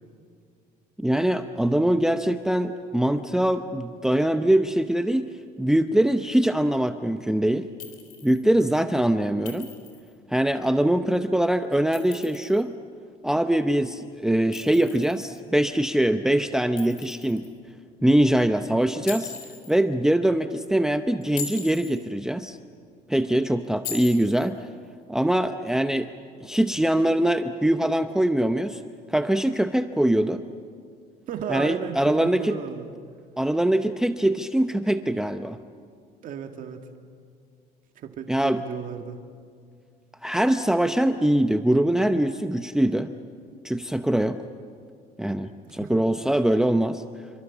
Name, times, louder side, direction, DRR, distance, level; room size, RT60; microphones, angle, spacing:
voice 1, 1.0-5.3 5.6-7.7 8.2-9.7 10.3-12.7 13.2-17.4 18.0-19.3 19.7-22.6 23.1-24.7 25.1-26.1 26.4-28.8 29.1-30.4 31.5-32.6 33.4-35.6 38.3-38.6 40.2-43.1 43.6-44.4 45.2-47.0, right 1 dB, 5° right, 8 dB, 0.8 m, -23 dB
Chink clink, 7.8-8.4 9.5-10.1 11.7-12.6 14.5-15.4 16.8-17.5 19.1-19.8 21.2-22.0 23.8-24.5, left 7 dB, 75° left, 4.0 m, -39 dB
voice 2, 31.3-32.9 36.2-36.9 38.0-39.2 45.7-46.0, right 7 dB, 60° right, 4 dB, 2.0 m, -34 dB
28.0 x 25.0 x 7.3 m, 2.2 s
cardioid pair, 115°, 16 cm